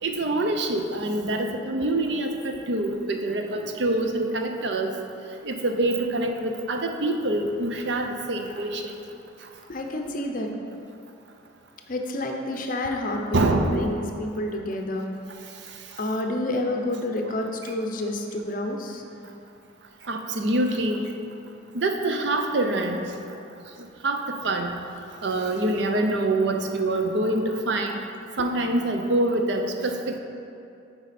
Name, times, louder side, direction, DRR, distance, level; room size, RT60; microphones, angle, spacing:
voice 1, 0.0-4.9 5.4-8.9 13.3-13.8 20.1-21.1 21.7-23.0 24.0-24.7 25.2-28.0 28.4-30.2, right 2 dB, 60° right, 4 dB, 0.5 m, -25 dB
voice 2, 9.7-10.5 11.9-15.1 16.0-19.0 28.4-28.5, left 1 dB, 45° left, 2 dB, 0.6 m, -29 dB
8.2 x 4.7 x 4.2 m, 2.6 s
head